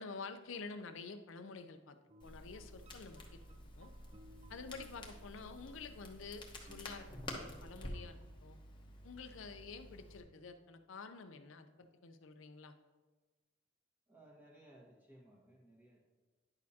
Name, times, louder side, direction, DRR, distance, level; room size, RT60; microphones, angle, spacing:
voice 1, 0.0-2.0 2.2-3.4 3.8-3.9 4.5-8.6 9.0-12.8, left 4 dB, 70° left, 9 dB, 0.5 m, -49 dB
sound 1, 2.1-8.2, right 2 dB, 30° right, 0.4 m, -64 dB
Crackle, 2.2-10.2, left 1 dB, 25° left, 0.9 m, -50 dB
voice 2, 14.1-16.0, right 1 dB, 10° right, -3 dB, 1.3 m, -61 dB
9.7 x 6.3 x 2.8 m, 1.3 s
head